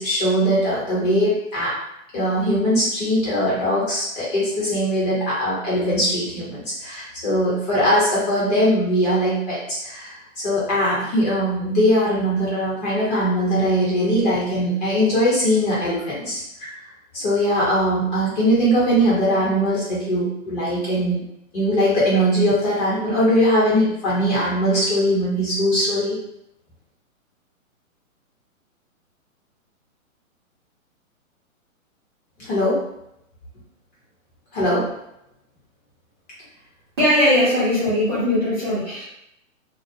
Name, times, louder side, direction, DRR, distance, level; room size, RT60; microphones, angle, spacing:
voice 1, 0.0-1.8 2.1-10.2 10.4-16.7 17.1-21.2 21.5-26.2 32.4-32.8 34.5-34.9, equal, 30° left, -8 dB, 1.0 m, -21 dB
voice 2, 37.0-39.0, left 1 dB, 20° right, -13 dB, 0.5 m, -19 dB
2.3 x 2.1 x 2.6 m, 0.80 s
hypercardioid pair, 155°, 42 cm